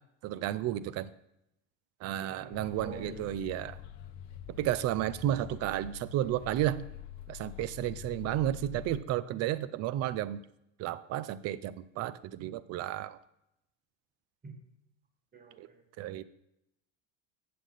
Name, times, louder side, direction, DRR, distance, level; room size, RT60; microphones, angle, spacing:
voice 1, 0.2-1.1 2.0-3.8 4.6-6.9 7.3-10.4 10.8-13.2 15.6-15.7 16.0-16.2, right 13 dB, 40° right, 17 dB, 0.4 m, -32 dB
voice 2, 2.2-3.3 14.4-14.5 15.3-15.8, right 3 dB, 25° right, 5 dB, 1.4 m, -47 dB
sound 1, 2.5-9.0, left 9 dB, 70° left, 0.8 m, -46 dB
8.5 x 7.2 x 3.9 m, 0.83 s
supercardioid pair, 110°, 39 cm